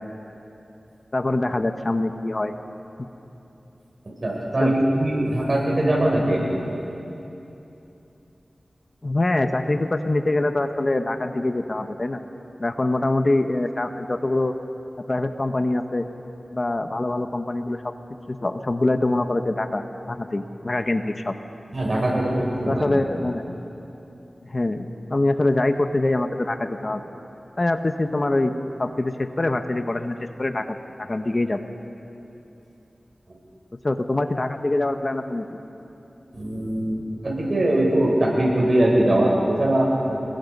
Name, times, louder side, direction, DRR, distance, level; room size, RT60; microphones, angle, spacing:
voice 1, 1.1-2.5 4.6-4.7 9.0-12.2 12.6-14.5 15.1-16.1 16.5-17.9 18.3-21.4 22.7-23.4 24.4-27.1 27.6-28.5 28.8-31.6 33.8-35.6, left 2 dB, 45° left, 7 dB, 1.1 m, -24 dB
voice 2, 4.0-6.6 21.7-22.8 36.3-40.1, right 1 dB, 55° right, -2 dB, 6.7 m, -21 dB
29.5 x 21.5 x 5.4 m, 2.9 s
wide cardioid pair, 60°, 0 cm